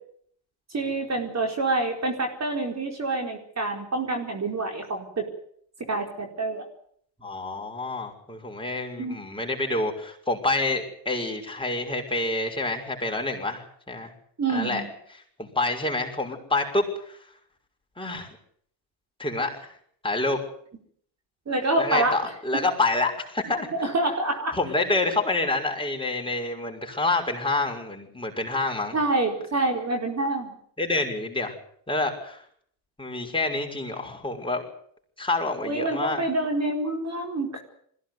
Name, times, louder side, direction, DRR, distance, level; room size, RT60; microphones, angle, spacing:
voice 1, 0.7-5.3 5.9-6.7 9.0-9.2 14.4-14.9 21.5-22.6 23.8-24.6 28.9-30.6 35.6-37.6, right 2 dB, 30° right, 3 dB, 4.6 m, -27 dB
voice 2, 7.2-14.1 14.5-14.8 15.4-17.2 18.0-18.3 19.2-19.7 20.0-20.4 21.8-23.9 24.5-29.0 30.8-31.5 31.9-32.4 33.0-34.6 35.2-36.2, left 2 dB, 10° left, 1 dB, 6.1 m, -27 dB
21.5 x 16.5 x 9.6 m, 0.65 s
supercardioid pair, 70°, 49 cm